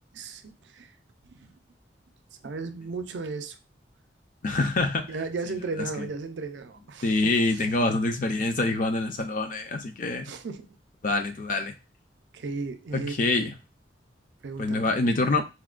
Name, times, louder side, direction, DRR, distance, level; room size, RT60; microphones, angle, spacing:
voice 1, 0.1-0.9 1.3-1.5 2.4-3.6 5.1-7.2 7.5-7.9 10.2-10.8 12.3-13.2 14.4-14.9, right 3 dB, 75° right, 0.4 m, -35 dB
voice 2, 4.4-5.1 5.8-6.1 7.0-10.3 11.0-11.7 12.9-13.5 14.6-15.4, left 2 dB, 45° left, 0.5 m, -25 dB
4.3 x 2.1 x 2.4 m
head